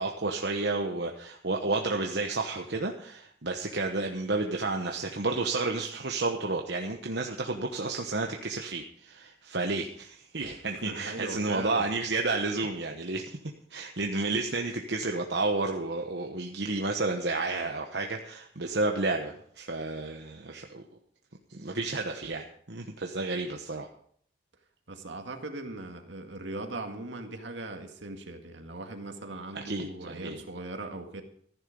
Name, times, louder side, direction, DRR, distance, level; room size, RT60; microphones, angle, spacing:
voice 1, 0.0-13.4 13.7-20.8 21.5-23.9 29.5-30.4, right 3 dB, 65° right, 2 dB, 1.1 m, -31 dB
voice 2, 10.9-11.9 24.9-31.2, right 2 dB, 80° right, 5 dB, 2.0 m, -39 dB
14.5 x 11.0 x 5.2 m, 0.62 s
head